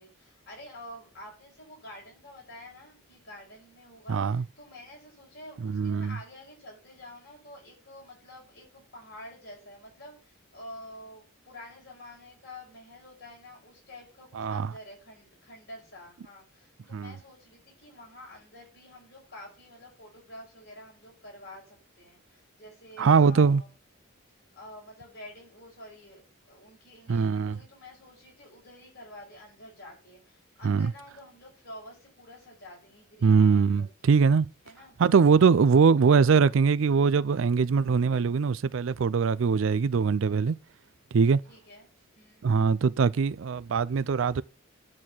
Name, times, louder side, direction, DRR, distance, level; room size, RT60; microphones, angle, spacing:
voice 1, 0.0-23.7 24.6-34.2 34.6-34.9 41.5-41.9 42.2-42.5, left 1 dB, 50° left, 5.6 m, -48 dB
voice 2, 4.1-4.4 5.6-6.2 14.4-14.7 16.9-17.1 23.0-23.6 27.1-27.6 30.6-30.9 33.2-34.5 35.0-40.6 41.1-41.4 42.4-44.4, right 5 dB, 65° right, 0.4 m, -22 dB
11.0 x 4.2 x 7.6 m
head